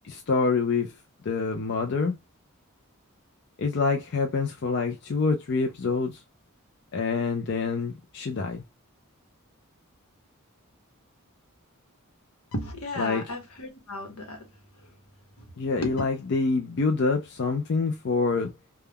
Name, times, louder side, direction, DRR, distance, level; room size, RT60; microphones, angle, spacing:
voice 1, 0.0-0.9 1.2-2.1 3.6-6.2 6.9-8.6 13.0-13.2 15.6-18.5, left 4 dB, 50° left, 0.4 m, -26 dB
voice 2, 12.5-14.5 15.4-15.5 15.8-15.9, left 1 dB, 80° left, 1.0 m, -34 dB
3.4 x 2.2 x 2.2 m
head